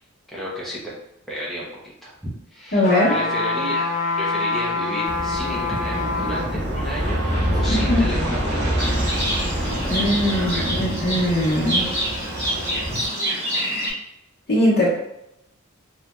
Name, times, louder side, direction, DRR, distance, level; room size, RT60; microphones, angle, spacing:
voice 1, 0.3-1.0 1.3-2.8 3.1-3.9 4.2-7.3 7.5-9.0 10.2-10.9 12.9-13.1, equal, ahead, -7 dB, 0.7 m, -32 dB
voice 2, 2.7-3.1 7.7-8.0 9.9-11.9 14.5-14.9, left 1 dB, 50° left, -6 dB, 1.2 m, -20 dB
sound 1, 2.8-6.5 7.0-7.1, left 3 dB, 35° left, 0.8 m, -25 dB
Aircraft, 5.0-13.1, equal, 55° right, 0.9 m, -26 dB
Livestock farm animals working animals, 8.8-13.9, equal, 15° right, 1.5 m, -27 dB
3.1 x 2.7 x 2.2 m, 0.83 s
head